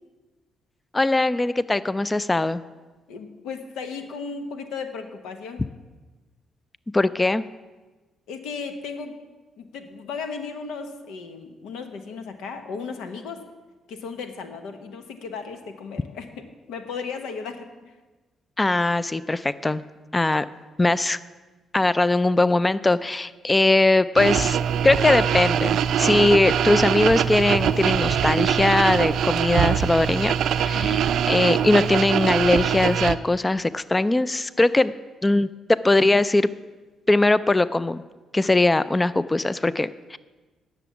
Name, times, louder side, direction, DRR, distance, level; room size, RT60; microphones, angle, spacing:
voice 1, 0.9-2.6 6.9-7.5 18.6-19.8 20.1-20.5 20.8-21.2 21.7-24.6 24.8-31.0 31.3-34.9 35.2-36.5 37.1-38.0 38.3-40.2, left 2 dB, 15° left, 16 dB, 0.3 m, -20 dB
voice 2, 3.1-5.6 8.3-9.2 9.6-13.4 13.9-17.9 30.7-31.0, left 5 dB, 90° left, 7 dB, 0.9 m, -35 dB
sound 1, 24.2-33.1, right 9 dB, 75° right, 0.4 m, -23 dB
10.0 x 6.8 x 7.0 m, 1.3 s
cardioid pair, 90°, 0 cm